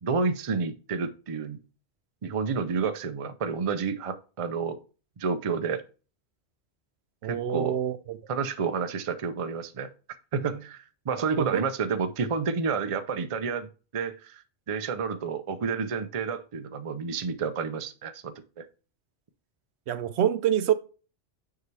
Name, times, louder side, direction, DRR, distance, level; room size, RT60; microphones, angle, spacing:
voice 1, 0.0-1.6 2.2-4.8 5.2-5.8 7.2-7.8 8.3-9.9 10.3-13.7 13.9-18.7, right 5 dB, 40° right, 0.5 m, -30 dB
voice 2, 7.2-8.2 11.4-11.6 19.9-20.7, right 10 dB, 75° right, 0.8 m, -26 dB
6.9 x 4.8 x 3.3 m
omnidirectional pair, 1.2 m